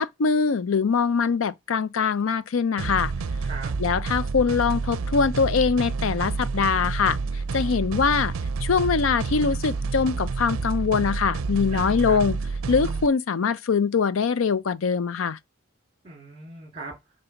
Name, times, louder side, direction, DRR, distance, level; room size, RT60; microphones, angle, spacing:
voice 1, 0.0-3.1 3.8-7.2 7.5-8.3 8.6-12.4 12.7-15.4, left 5 dB, 75° left, 0.5 m, -23 dB
voice 2, 2.7-3.7 11.7-12.2 16.0-16.9, right 3 dB, 30° right, 1.9 m, -40 dB
sound 1, 2.8-13.1, right 4 dB, 85° right, 0.5 m, -29 dB
7.9 x 3.4 x 5.7 m
head